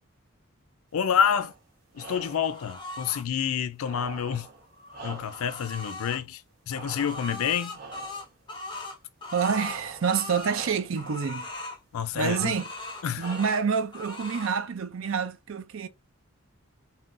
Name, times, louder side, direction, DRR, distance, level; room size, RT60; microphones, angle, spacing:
voice 1, 0.9-1.5 1.9-4.5 5.0-6.4 6.7-7.8 11.9-12.6 13.0-13.3, left 8 dB, 75° left, 0.4 m, -28 dB
sound 1, 1.1-1.6 1.9-2.6 3.8-5.6 6.7-7.4 7.7-8.3 9.4-10.2 10.4-11.0 12.1-12.7 13.2-13.8, right 4 dB, 40° right, 1.0 m, -43 dB
sound 2, 2.4-3.2 4.6-6.2 6.7-10.6 10.9-11.8 12.2-13.6 13.9-14.5, left 2 dB, 20° left, 0.6 m, -39 dB
voice 2, 9.3-11.5 12.2-12.7 13.2-15.9, right 6 dB, 65° right, 0.5 m, -27 dB
3.7 x 2.1 x 2.5 m
head